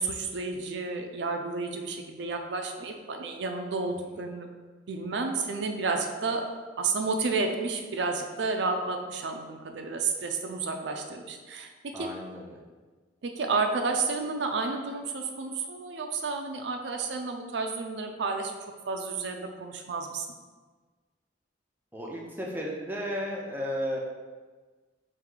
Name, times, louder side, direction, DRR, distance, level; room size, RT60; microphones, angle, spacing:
voice 1, 0.0-4.5 4.9-6.5 6.8-12.1 13.2-18.5 18.9-20.3, right 4 dB, 75° right, 4 dB, 0.4 m, -31 dB
voice 2, 11.9-12.6 21.9-24.0, equal, 10° right, -2 dB, 0.5 m, -34 dB
4.6 x 2.7 x 3.8 m, 1.4 s
head